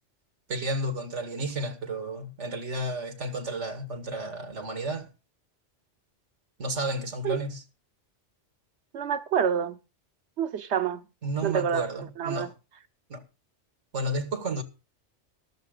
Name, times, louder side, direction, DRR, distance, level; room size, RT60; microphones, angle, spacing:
voice 1, 0.5-5.1 6.6-7.6 11.2-12.5 13.1-13.2 13.9-14.6, right 1 dB, 85° right, 2.0 m, -32 dB
voice 2, 8.9-9.8 10.4-11.0 11.4-11.9 12.2-12.5, right 8 dB, 70° right, 1.1 m, -27 dB
13.0 x 13.0 x 3.9 m
omnidirectional pair, 1.2 m